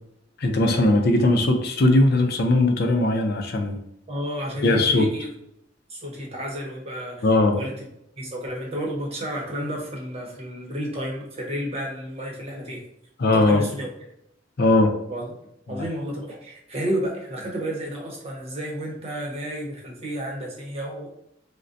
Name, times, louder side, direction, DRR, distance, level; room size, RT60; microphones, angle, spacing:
voice 1, 0.4-3.8 4.6-5.1 7.2-7.6 13.2-13.6 14.6-15.0 15.7-15.8, left 2 dB, 55° left, 4 dB, 0.5 m, -19 dB
voice 2, 4.1-5.3 5.9-7.3 7.6-7.7 8.2-12.8 13.3-13.9 15.1-15.2 15.7-21.1, equal, 35° right, -1 dB, 0.8 m, -31 dB
3.7 x 2.1 x 2.6 m, 0.75 s
head